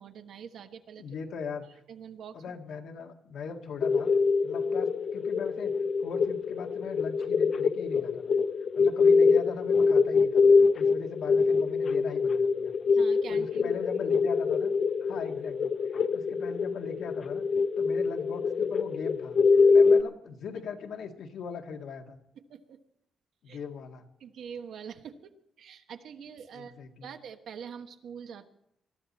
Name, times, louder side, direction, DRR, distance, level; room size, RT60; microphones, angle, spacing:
voice 1, 0.0-1.0 1.9-2.6 12.9-13.8 22.5-22.8 23.5-23.6 24.2-26.7 27.0-28.5, right 7 dB, 70° right, 7 dB, 1.2 m, -44 dB
voice 2, 1.0-1.8 2.3-4.1 4.4-5.7 6.0-8.4 8.7-10.4 10.7-12.7 13.3-14.7 15.0-17.4 17.8-19.4 19.7-22.2 23.4-24.1 26.5-27.1, left 5 dB, 75° left, 3 dB, 1.8 m, -40 dB
sound 1, 3.8-20.0, left 5 dB, 45° left, 0.6 m, -24 dB
20.5 x 13.0 x 4.2 m, 0.76 s
wide cardioid pair, 155°, 0 cm